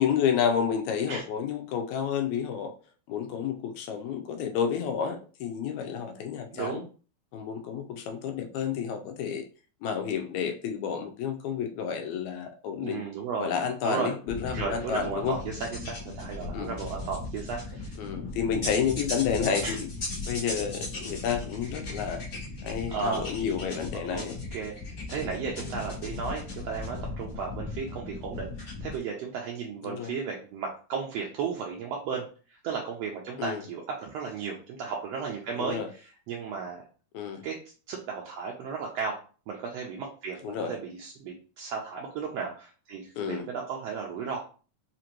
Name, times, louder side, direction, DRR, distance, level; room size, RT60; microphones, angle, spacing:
voice 1, 0.0-2.7 3.1-6.8 7.3-9.4 9.8-13.0 13.4-15.4 16.5-16.8 18.0-19.9 20.3-22.2 22.6-24.4 29.8-30.1 33.4-33.6 35.6-35.9 37.1-37.4 40.4-40.7 43.2-43.4, left 7 dB, 80° left, 5 dB, 1.9 m, -30 dB
voice 2, 6.5-6.9 12.8-13.5 13.8-14.1 14.5-17.9 19.6-19.8 22.9-23.3 23.9-24.8 25.1-36.8 37.4-37.6 37.9-39.2 39.5-44.4, right 5 dB, 75° right, -1 dB, 1.6 m, -34 dB
sound 1, 14.3-29.0, left 3 dB, 55° left, 0.8 m, -37 dB
5.0 x 2.5 x 2.9 m, 0.38 s
omnidirectional pair, 3.4 m